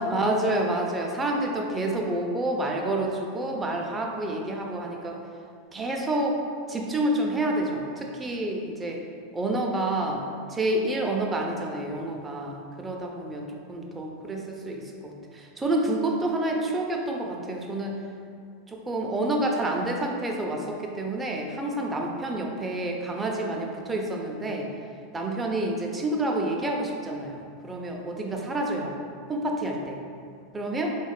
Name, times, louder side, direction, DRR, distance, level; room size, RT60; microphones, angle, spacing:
voice 1, 0.0-5.2 5.7-6.4 6.7-9.0 9.3-10.2 10.5-18.0 18.7-24.7 25.1-28.9 29.3-30.0 30.5-30.9, right 1 dB, 15° right, 0 dB, 0.4 m, -28 dB
3.9 x 2.1 x 2.4 m, 2.3 s
figure-of-eight pair, 85°, 0 cm